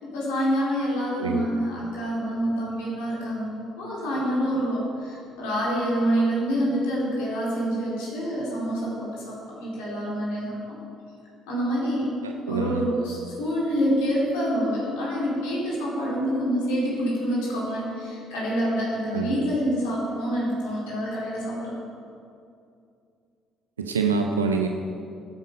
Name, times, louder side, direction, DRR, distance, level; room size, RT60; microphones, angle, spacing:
voice 1, 0.0-10.8 11.5-12.1 12.5-21.8, equal, 70° left, -6 dB, 4.0 m, -27 dB
voice 2, 12.2-12.8 19.1-19.5 23.8-24.7, right 5 dB, 85° right, 4 dB, 0.6 m, -26 dB
16.5 x 9.2 x 5.4 m, 2.5 s
figure-of-eight pair, 50°, 0 cm